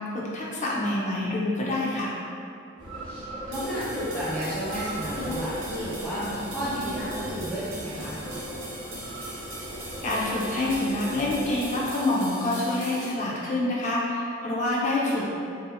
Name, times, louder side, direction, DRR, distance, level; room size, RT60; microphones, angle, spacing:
voice 1, 0.1-2.1 10.0-15.3, left 2 dB, 40° left, -5 dB, 0.5 m, -27 dB
sound 1, 2.8-11.9, equal, 25° right, 0.7 m, -38 dB
voice 2, 3.0-8.2, equal, 5° left, -12 dB, 0.9 m, -32 dB
sound 2, 3.5-13.1, right 1 dB, 90° right, 0.9 m, -40 dB
2.7 x 2.5 x 2.3 m, 2.5 s
head